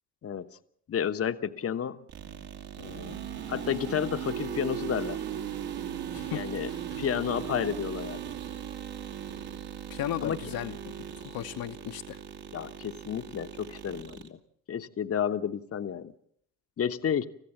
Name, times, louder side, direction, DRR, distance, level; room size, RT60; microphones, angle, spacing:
voice 1, 0.9-2.0 2.8-3.2 3.5-5.2 6.3-6.7 7.0-8.2 10.2-10.4 12.5-14.4 14.7-16.1 16.8-17.3, left 8 dB, 30° left, 1.1 m, -31 dB
sound 1, 2.1-14.3, right 9 dB, 55° right, 2.4 m, -38 dB
voice 2, 6.1-7.0 9.9-10.8 11.1-12.2, left 12 dB, 50° left, 1.1 m, -36 dB
28.0 x 15.5 x 7.1 m
figure-of-eight pair, 50°, 45 cm